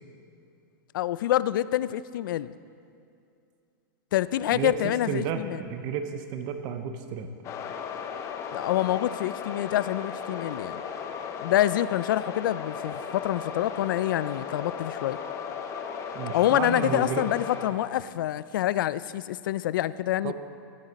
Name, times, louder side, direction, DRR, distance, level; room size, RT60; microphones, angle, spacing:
voice 1, 0.9-2.5 4.1-5.6 8.5-10.8 11.4-15.2 16.3-20.3, left 13 dB, 70° left, 17 dB, 0.4 m, -26 dB
voice 2, 4.5-7.3 16.1-17.3 20.2-20.3, right 7 dB, 35° right, 7 dB, 0.8 m, -32 dB
sound 1, 7.4-17.7, left 6 dB, 25° left, 0.8 m, -36 dB
18.5 x 9.0 x 4.2 m, 2.5 s
supercardioid pair, 150°, 11 cm